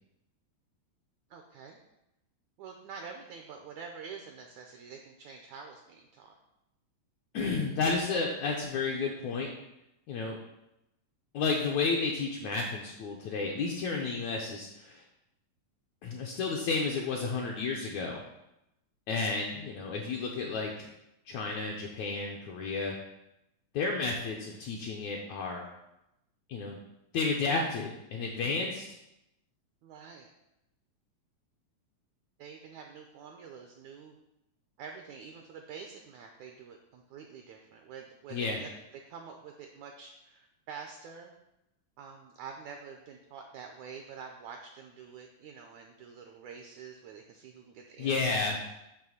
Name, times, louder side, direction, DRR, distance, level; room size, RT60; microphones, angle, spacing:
voice 1, 1.3-1.8 2.6-6.3 19.2-19.7 29.8-30.3 32.4-34.2 34.8-38.7 39.1-41.3 42.0-48.6, right 6 dB, 80° right, 3 dB, 1.7 m, -47 dB
voice 2, 7.3-9.5 10.1-10.4 11.3-15.0 16.0-18.2 19.1-20.9 21.3-23.0 23.7-25.7 26.5-26.8 27.1-28.9 38.3-38.6 48.0-48.6, left 4 dB, 75° left, -1 dB, 1.7 m, -31 dB
9.1 x 3.1 x 6.4 m, 0.88 s
omnidirectional pair, 4.0 m